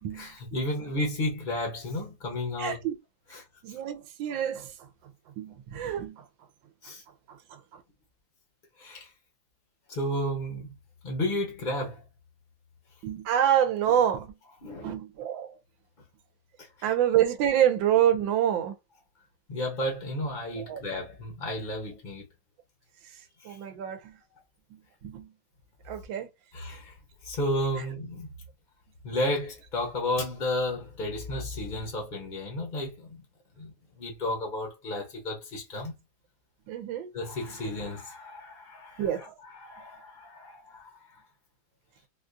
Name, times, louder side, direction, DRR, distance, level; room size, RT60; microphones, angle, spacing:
voice 1, 0.1-2.8 3.3-3.8 6.8-7.0 8.8-9.1 9.9-10.7 11.0-12.0 14.6-14.9 16.6-16.9 19.5-22.3 23.4-23.6 26.5-27.0 27.2-28.3 29.0-33.2 33.6-35.9 37.1-41.2, left 1 dB, 40° left, 0.7 m, -33 dB
voice 2, 2.6-3.0 3.6-4.7 5.4-6.2 7.3-7.8 13.0-14.3 14.8-15.6 16.8-18.7 20.6-20.8 23.4-24.2 24.7-25.3 25.9-26.3 36.7-37.1 39.0-39.3, right 10 dB, 80° right, 1.3 m, -27 dB
4.1 x 2.3 x 2.5 m
omnidirectional pair, 2.1 m